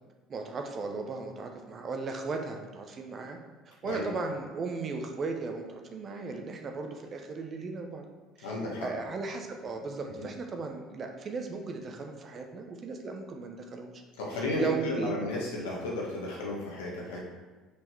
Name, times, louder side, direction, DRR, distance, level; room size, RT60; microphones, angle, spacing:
voice 1, 0.3-3.4 3.7-8.0 8.4-8.5 8.8-13.9 14.3-15.2, right 4 dB, 45° right, 3 dB, 1.0 m, -36 dB
voice 2, 8.4-8.9 14.2-17.3, left 2 dB, 80° left, -3 dB, 1.7 m, -33 dB
5.5 x 5.2 x 4.7 m, 1.3 s
hypercardioid pair, 60°, 0 cm